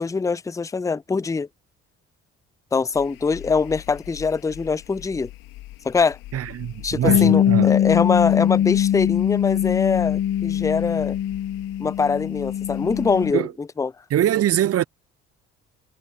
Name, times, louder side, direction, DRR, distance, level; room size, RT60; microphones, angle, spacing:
voice 1, 0.0-1.5 2.7-5.3 5.8-6.2 6.8-11.2 11.8-13.5 13.8-13.9, left 4 dB, 10° left, 0.5 m, -23 dB
sound 1, 2.9-13.3, left 17 dB, 70° left, 2.9 m, -42 dB
voice 2, 6.3-7.7 13.3-13.5 14.1-14.8, right 12 dB, 45° right, 0.6 m, -22 dB
Bass guitar, 7.1-13.3, left 10 dB, 45° left, 0.8 m, -21 dB
hypercardioid pair, 50°, 34 cm